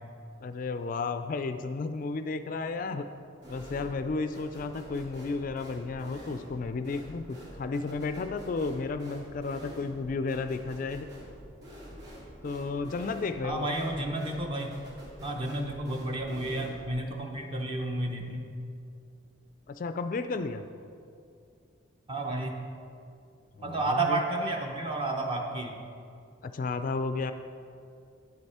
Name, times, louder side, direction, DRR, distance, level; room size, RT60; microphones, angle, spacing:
voice 1, 0.4-3.1 3.5-11.0 12.4-13.7 19.7-20.6 23.6-24.2 26.4-27.3, left 3 dB, 40° left, 10 dB, 0.3 m, -33 dB
sound 1, 3.4-4.1 4.3-16.9, equal, 55° right, 2.2 m, -47 dB
voice 2, 13.4-14.8 15.2-18.5 22.1-22.6 23.6-25.8, right 2 dB, 25° right, 2 dB, 0.7 m, -31 dB
9.3 x 7.9 x 4.2 m, 2.4 s
head